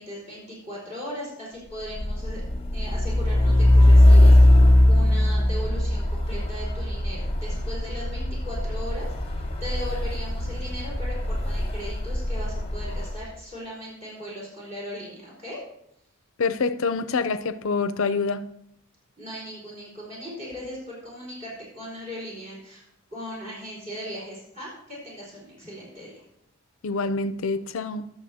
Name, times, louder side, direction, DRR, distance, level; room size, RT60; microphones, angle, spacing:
voice 1, 0.0-2.4 2.7-4.6 4.9-15.6 19.2-22.8 23.1-26.1, equal, 30° right, 4.3 m, -38 dB
Truck, 1.8-13.2, left 1 dB, 25° left, 0.9 m, -20 dB
voice 2, 16.4-18.5 26.8-28.1, left 4 dB, 70° left, 0.5 m, -26 dB
20.5 x 7.0 x 2.8 m
head